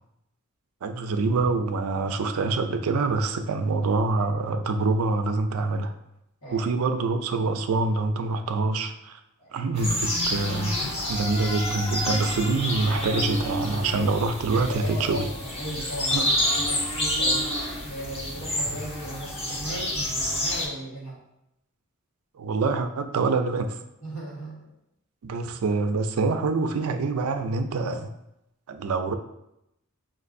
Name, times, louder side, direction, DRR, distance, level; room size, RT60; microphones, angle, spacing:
voice 1, 0.8-5.9 6.5-9.2 9.5-10.8 11.1-15.3 16.1-16.3 22.4-23.8 25.2-28.1 28.7-29.1, right 3 dB, 80° right, 8 dB, 0.4 m, -25 dB
voice 2, 6.4-6.8 9.4-9.5 14.6-21.2 24.0-24.7, right 1 dB, 85° left, -4 dB, 1.5 m, -37 dB
sound 1, 9.7-20.7, left 1 dB, 30° left, 0.8 m, -28 dB
6.0 x 2.5 x 2.6 m, 0.84 s
head